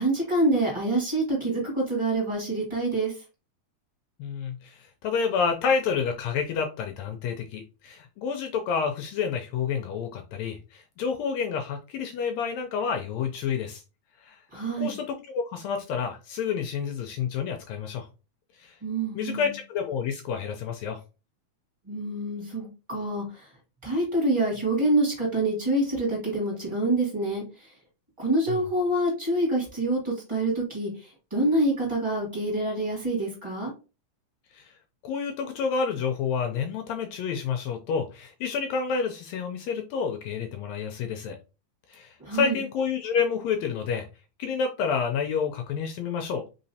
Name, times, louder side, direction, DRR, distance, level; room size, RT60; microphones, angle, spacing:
voice 1, 0.0-3.2 14.5-15.0 18.8-19.5 21.8-23.5 23.8-27.7 28.2-33.7 42.2-42.6, right 2 dB, 10° right, -2 dB, 1.5 m, -26 dB
voice 2, 4.2-13.8 14.2-14.4 14.8-18.1 18.6-18.8 19.1-21.0 28.5-28.6 34.5-34.7 35.0-41.4 41.9-44.1 44.4-46.4, left 6 dB, 80° left, 5 dB, 1.6 m, -29 dB
4.0 x 3.8 x 2.7 m, 0.31 s
omnidirectional pair, 3.6 m